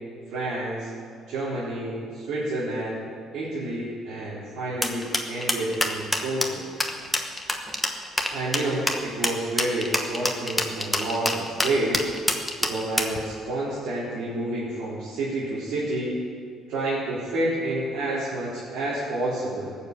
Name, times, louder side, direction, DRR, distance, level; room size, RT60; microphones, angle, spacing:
voice 1, 0.3-0.9 1.3-3.0 3.3-6.6 8.3-12.1 12.6-16.2 16.7-19.8, right 1 dB, 70° right, -10 dB, 4.1 m, -29 dB
sound 1, 4.8-13.2, left 1 dB, 5° left, 1.0 m, -26 dB
18.5 x 7.3 x 8.2 m, 2.1 s
cardioid pair, 175°, 0 cm